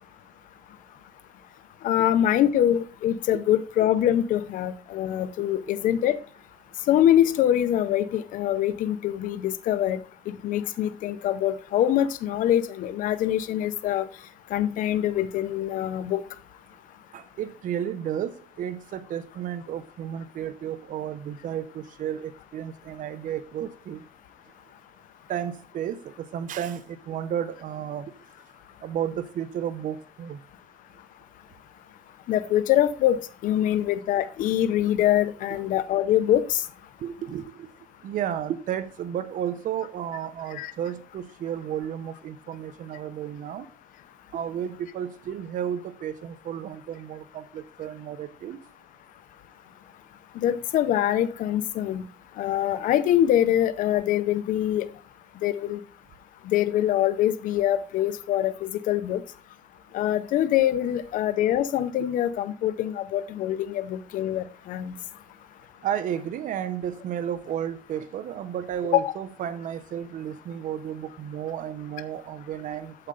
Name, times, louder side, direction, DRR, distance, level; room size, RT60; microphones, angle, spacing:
voice 1, 1.8-6.2 6.9-10.0 10.4-14.1 14.5-16.2 32.3-33.2 33.4-36.7 40.5-40.7 50.4-52.0 52.4-54.9 55.4-55.8 56.5-59.2 59.9-64.9 68.9-69.1, left 11 dB, 90° left, 0.6 m, -24 dB
voice 2, 17.1-24.0 25.3-28.1 28.8-30.4 37.0-37.7 38.0-43.7 44.3-48.6 65.8-73.1, right 9 dB, 80° right, 0.8 m, -32 dB
8.9 x 7.6 x 3.8 m
cardioid pair, 95°, 13 cm